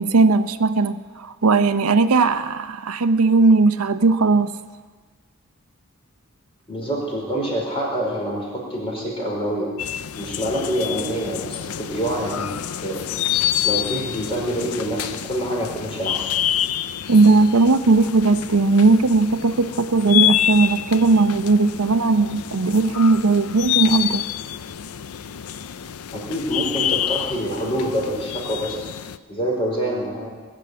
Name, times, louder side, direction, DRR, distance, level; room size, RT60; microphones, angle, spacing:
voice 1, 0.0-4.5 17.1-24.2, right 3 dB, 80° right, 11 dB, 0.6 m, -17 dB
voice 2, 6.7-9.7 10.2-13.1 13.6-16.3 26.1-28.8 29.3-30.3, equal, 25° left, -3 dB, 4.8 m, -26 dB
sound 1, 9.8-29.2, left 11 dB, 85° left, 0.5 m, -27 dB
20.5 x 7.3 x 9.4 m, 1.4 s
head